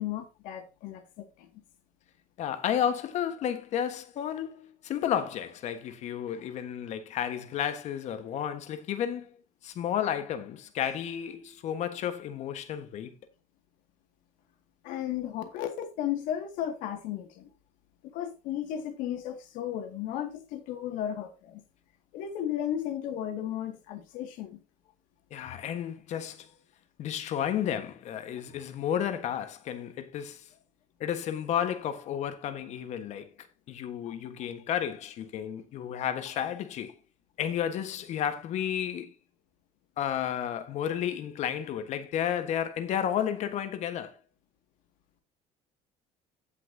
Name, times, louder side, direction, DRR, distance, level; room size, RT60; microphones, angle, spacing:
voice 1, 0.0-1.5 14.8-17.5 18.0-21.6 22.1-24.6 28.4-28.5, left 10 dB, 85° left, 2.1 m, -34 dB
voice 2, 2.4-9.4 9.6-13.1 25.3-26.5 27.0-30.5 31.0-33.3 33.7-37.0 37.4-39.1 40.0-44.1, left 9 dB, 60° left, 1.4 m, -32 dB
16.5 x 5.9 x 2.8 m
cardioid pair, 130°, 13 cm